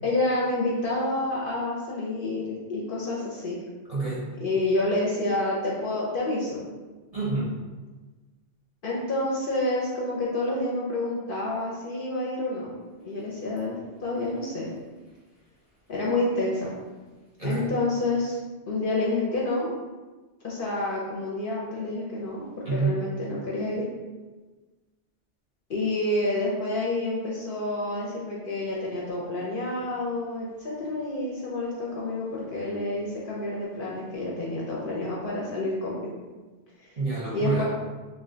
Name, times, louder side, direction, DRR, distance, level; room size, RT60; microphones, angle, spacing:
voice 1, 0.0-3.6 4.4-6.6 8.8-12.7 13.0-14.7 15.9-16.7 17.4-18.4 18.7-19.7 20.4-22.4 22.7-23.8 25.7-36.1 36.8-36.9 37.3-37.6, left 2 dB, 55° left, -5 dB, 0.7 m, -28 dB
voice 2, 3.9-4.2 7.1-7.5 17.4-17.7 22.6-23.0 37.0-37.6, right 3 dB, 40° right, -8 dB, 0.6 m, -27 dB
2.4 x 2.2 x 3.7 m, 1.3 s
omnidirectional pair, 1.2 m